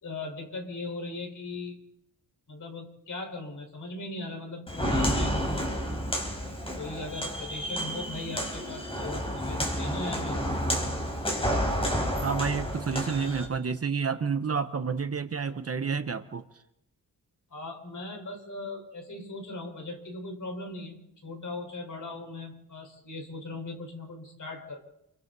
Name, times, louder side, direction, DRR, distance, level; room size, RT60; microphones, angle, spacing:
voice 1, 0.0-1.8 2.5-5.6 6.8-10.5 17.5-24.8, left 2 dB, 55° left, 3 dB, 4.8 m, -39 dB
Walk footsteps, 4.7-13.5, equal, 15° left, 4.4 m, -30 dB
voice 2, 12.2-16.5, right 5 dB, 40° right, 10 dB, 0.8 m, -29 dB
29.0 x 24.0 x 4.1 m, 0.82 s
wide cardioid pair, 170°, 36 cm